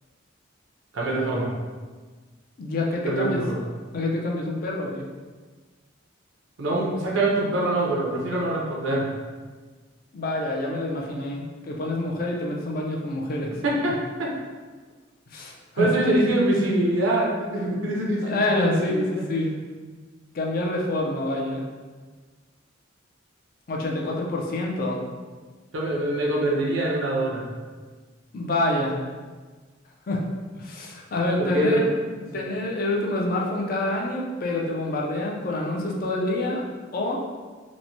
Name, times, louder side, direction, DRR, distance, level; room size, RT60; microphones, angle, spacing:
voice 1, 0.9-1.5 3.0-3.6 6.6-9.1 13.6-14.3 15.8-19.2 25.7-27.4 31.4-31.8, right 1 dB, 85° right, -3 dB, 0.6 m, -24 dB
voice 2, 2.6-3.4 3.9-5.1 10.1-13.5 15.3-15.9 18.2-19.5 20.3-21.6 23.7-25.0 28.3-29.0 30.1-30.2 30.6-31.9 32.3-36.6 36.9-37.2, left 2 dB, 45° left, -1 dB, 0.4 m, -27 dB
3.0 x 2.1 x 2.6 m, 1.4 s
head